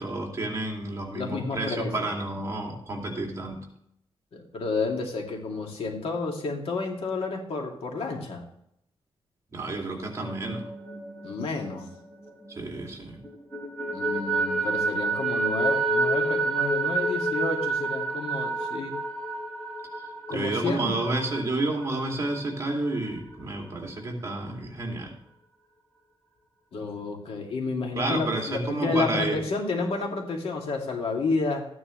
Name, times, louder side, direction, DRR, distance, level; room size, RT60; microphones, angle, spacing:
voice 1, 0.0-3.6 9.5-10.7 12.5-13.2 20.3-25.1 27.9-29.4, right 2 dB, 30° right, 1 dB, 2.7 m, -30 dB
voice 2, 1.1-2.1 4.3-8.4 11.2-11.9 13.9-18.9 20.3-21.0 26.7-31.7, left 3 dB, 75° left, 1 dB, 2.6 m, -30 dB
sound 1, 10.0-12.9 13.2-22.7, right 3 dB, 5° left, 5.1 m, -29 dB
14.0 x 9.7 x 3.2 m, 0.73 s
wide cardioid pair, 160°, 10 cm